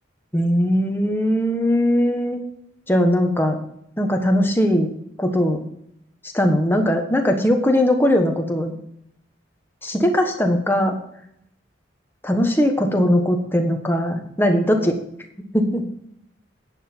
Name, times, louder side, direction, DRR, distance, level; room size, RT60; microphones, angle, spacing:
voice 1, 0.3-2.4 2.9-3.6 4.0-4.9 5.2-5.6 6.3-8.8 9.8-11.0 12.2-14.9 15.5-15.8, equal, 10° left, 3 dB, 1.2 m, -19 dB
11.0 x 8.8 x 4.5 m, 0.74 s
head